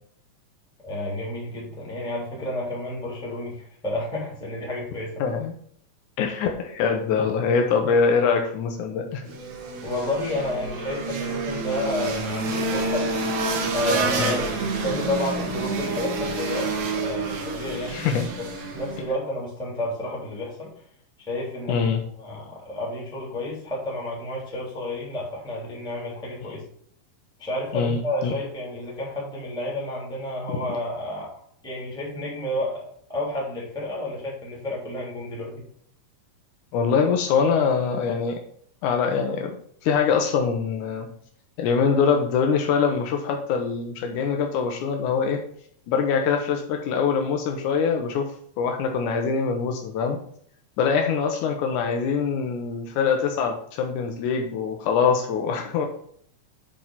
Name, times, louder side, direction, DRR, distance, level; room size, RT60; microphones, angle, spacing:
voice 1, 0.8-5.2 9.8-13.1 13.7-18.1 18.4-18.5 18.7-20.7 21.3-21.9 22.2-26.6 27.4-31.3 31.6-32.8 33.1-35.5, left 1 dB, ahead, -4 dB, 2.4 m, -30 dB
voice 2, 5.2-5.5 6.2-9.2 14.2-14.4 17.9-18.3 21.7-22.0 27.7-28.3 36.7-38.4 38.8-39.5 39.8-41.1 41.6-45.4 45.9-48.3 48.6-50.2 50.8-55.9, left 6 dB, 85° left, 3 dB, 1.7 m, -23 dB
sound 1, 9.3-19.1, right 3 dB, 80° right, 3.7 m, -28 dB
8.9 x 4.6 x 5.7 m, 0.62 s
omnidirectional pair, 4.8 m